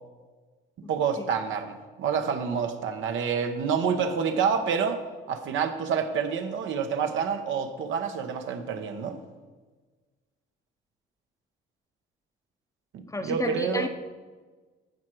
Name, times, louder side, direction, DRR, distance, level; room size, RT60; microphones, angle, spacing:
voice 1, 0.9-5.0 5.3-9.2 12.9-13.9, right 6 dB, 80° right, 6 dB, 1.0 m, -28 dB
voice 2, 13.1-13.9, left 2 dB, 15° left, 8 dB, 0.7 m, -31 dB
14.0 x 4.8 x 4.6 m, 1.3 s
cardioid pair, 90°, 20 cm